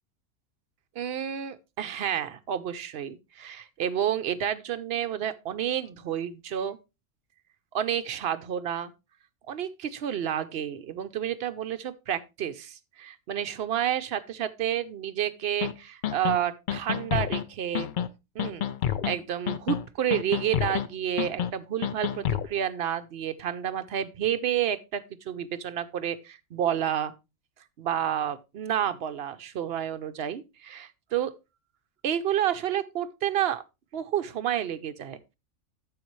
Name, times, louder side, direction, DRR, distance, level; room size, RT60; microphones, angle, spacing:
voice 1, 1.0-6.8 7.7-8.9 9.5-17.9 18.3-18.7 19.0-27.1 27.8-31.3 32.0-33.6 33.9-35.3, right 10 dB, 60° right, 0.9 m, -30 dB
sound 1, 15.6-15.7 16.0-16.4 16.7-17.4 17.7-18.1 18.4-19.1 19.5-19.8 20.1-20.9 21.2-21.5 21.8-22.5, left 10 dB, 55° left, 0.6 m, -28 dB
9.6 x 7.2 x 3.1 m
omnidirectional pair, 1.3 m